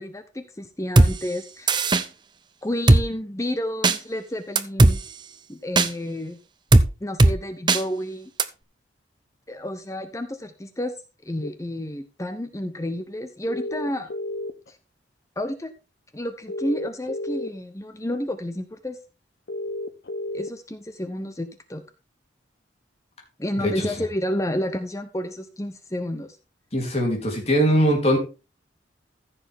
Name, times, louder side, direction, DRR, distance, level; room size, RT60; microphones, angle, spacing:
voice 1, 0.0-1.8 2.6-5.0 5.5-6.4 7.0-8.3 9.5-10.9 11.2-14.1 14.7-14.8 15.4-15.7 16.1-19.0 20.3-21.8 23.4-26.4, left 1 dB, 15° left, 9 dB, 0.7 m, -30 dB
Drum kit, 1.0-1.1 1.7-2.0 2.9-3.0 3.8-4.0 4.6-4.9 5.8-5.9 6.7-6.9 7.2-7.3 7.7-7.8 8.4-8.5, right 2 dB, 25° right, 0.6 m, -15 dB
sound 1, 11.4-11.5 13.5-14.7 16.5-17.5 19.5-20.5, left 1 dB, 65° left, 0.7 m, -31 dB
voice 2, 23.6-23.9 26.7-28.2, equal, 35° left, 1 dB, 3.3 m, -21 dB
14.5 x 6.9 x 3.6 m, 0.30 s
head